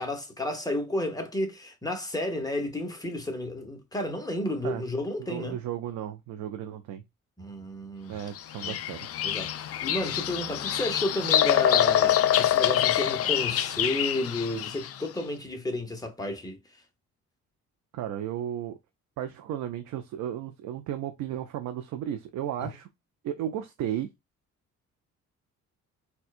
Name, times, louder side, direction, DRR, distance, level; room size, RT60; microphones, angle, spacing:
voice 1, 0.0-5.6 7.4-8.2 8.6-8.8 9.2-16.6 22.6-22.7, left 1 dB, 10° left, 0.9 m, -32 dB
voice 2, 5.2-7.0 8.1-9.1 17.9-18.8 19.2-22.9 23.2-24.1, right 10 dB, 80° right, 0.5 m, -34 dB
Bird vocalization bird call bird song, 8.4-15.0, left 11 dB, 50° left, 0.4 m, -25 dB
4.4 x 2.2 x 2.4 m
cardioid pair, 90°, 30 cm